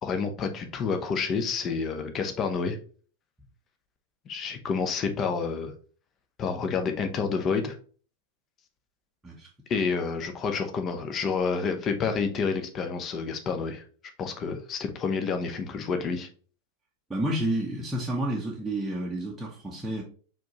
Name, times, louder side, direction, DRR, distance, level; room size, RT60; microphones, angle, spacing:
voice 1, 0.0-2.8 4.3-5.7 6.4-7.7 9.7-13.8 14.2-16.3, left 5 dB, 30° left, 0.8 m, -29 dB
voice 2, 17.1-20.0, right 1 dB, 5° right, 0.9 m, -30 dB
4.8 x 3.7 x 3.0 m
figure-of-eight pair, 90°, 0 cm